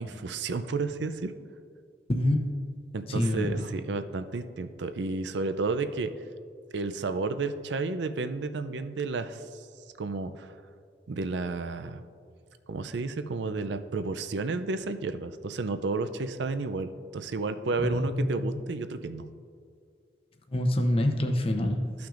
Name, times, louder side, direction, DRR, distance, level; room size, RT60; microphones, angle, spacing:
voice 1, 0.0-1.3 2.9-6.1 6.7-9.7 10.0-10.5 11.1-12.0 12.7-19.2 22.0-22.1, right 3 dB, 80° right, 10 dB, 0.5 m, -32 dB
voice 2, 2.1-2.6 3.1-3.7 17.8-18.5 20.5-21.9, left 1 dB, 30° left, 4 dB, 0.7 m, -26 dB
14.5 x 5.9 x 2.5 m, 2.3 s
head